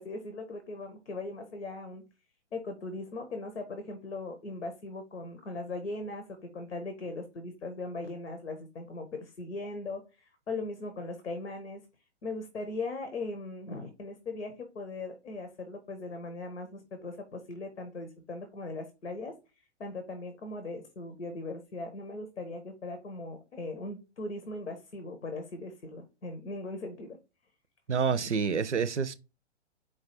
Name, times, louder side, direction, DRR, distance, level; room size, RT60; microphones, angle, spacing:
voice 1, 0.0-2.0 2.5-11.8 12.2-19.3 19.8-27.2 28.1-28.4, left 2 dB, 75° left, 0.9 m, -39 dB
voice 2, 27.9-29.1, right 6 dB, 90° right, 0.5 m, -28 dB
4.6 x 2.3 x 4.4 m
figure-of-eight pair, 110°, 34 cm